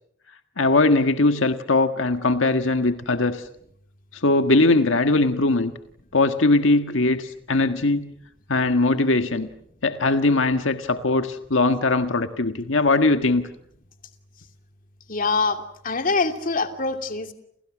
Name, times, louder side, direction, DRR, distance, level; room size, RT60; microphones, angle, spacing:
voice 1, 0.6-3.4 4.1-5.7 6.1-8.1 8.5-9.5 9.8-13.4, left 2 dB, 85° left, 8 dB, 1.6 m, -20 dB
voice 2, 15.1-17.3, left 3 dB, 45° left, 6 dB, 2.7 m, -24 dB
30.0 x 29.0 x 6.2 m, 0.69 s
head